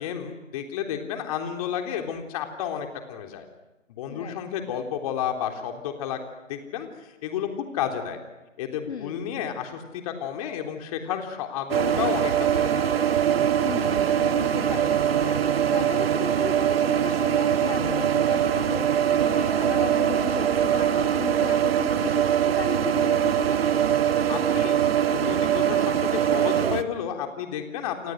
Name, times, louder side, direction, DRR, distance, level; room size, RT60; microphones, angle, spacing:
voice 1, 0.0-3.5 3.9-6.2 6.5-8.2 8.6-12.9 24.3-24.8 25.1-28.1, left 9 dB, 30° left, 4 dB, 3.6 m, -31 dB
voice 2, 4.1-4.4 8.9-9.2 13.6-15.4 15.7-23.6, left 7 dB, 55° left, 8 dB, 1.7 m, -35 dB
sound 1, 11.7-26.8, right 9 dB, 50° right, 1.7 m, -23 dB
30.0 x 28.0 x 6.5 m, 1.1 s
figure-of-eight pair, 145°, 38 cm